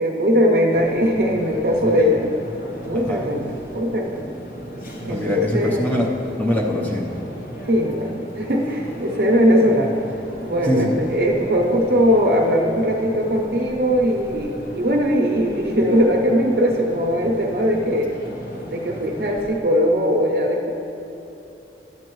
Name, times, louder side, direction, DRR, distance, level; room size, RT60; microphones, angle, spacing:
voice 1, 0.0-2.3 2.8-4.2 5.0-5.9 7.7-10.0 10.4-18.1 18.7-20.7, equal, 60° right, 0 dB, 0.6 m, -20 dB
sound 1, 0.7-19.6, equal, 55° left, 1.0 m, -36 dB
voice 2, 2.9-3.3 5.1-7.1 10.6-11.0, left 1 dB, 10° left, -2 dB, 0.7 m, -23 dB
11.5 x 7.8 x 3.0 m, 3.0 s
head